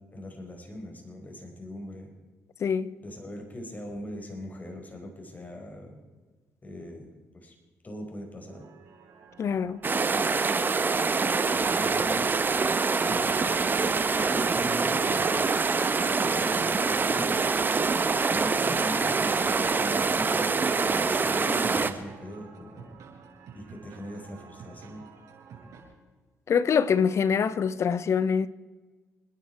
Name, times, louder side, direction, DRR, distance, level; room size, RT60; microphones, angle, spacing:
voice 1, 0.1-2.1 3.0-6.0 6.6-7.5 7.8-8.6 11.5-12.3 13.1-13.4 14.3-15.4 16.1-17.5 18.3-22.9 23.5-25.0, equal, 30° left, 5.1 m, -40 dB
voice 2, 2.6-2.9 9.4-9.8 26.5-28.5, left 6 dB, 55° left, 1.0 m, -24 dB
sound 1, 8.5-25.8, right 6 dB, 75° right, 6.3 m, -51 dB
sound 2, 9.8-21.9, right 4 dB, 35° right, 1.4 m, -25 dB
28.5 x 10.5 x 4.6 m
supercardioid pair, 60°, 6 cm